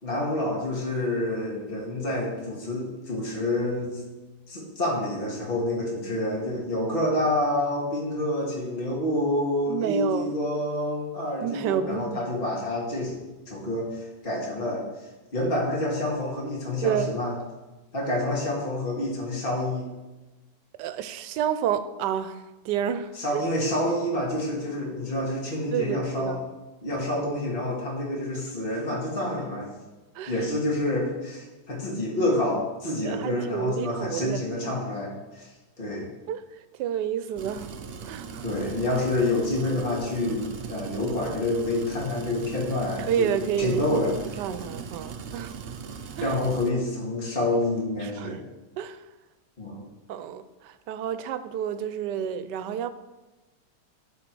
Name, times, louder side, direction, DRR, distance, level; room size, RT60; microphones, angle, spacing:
voice 1, 0.0-4.0 4.5-13.1 13.5-14.8 15.3-17.3 17.9-19.9 23.1-26.4 26.8-29.7 30.3-35.5 35.8-36.1 38.4-43.3 43.6-44.1 46.2-48.4 49.6-49.8, left 1 dB, 35° left, -4 dB, 2.1 m, -28 dB
voice 2, 9.7-10.3 11.4-12.2 16.8-17.1 20.8-23.4 25.7-26.4 30.1-30.3 33.0-34.7 36.3-36.4 36.8-37.7 38.0-38.4 43.0-44.0 44.4-45.6 46.2-46.3 48.0-48.4 48.8-49.0 50.1-52.9, right 9 dB, 85° right, 13 dB, 1.2 m, -29 dB
sound 1, 37.4-46.7, right 6 dB, 70° right, 0.5 m, -39 dB
12.0 x 4.3 x 4.6 m, 1.1 s
omnidirectional pair, 1.8 m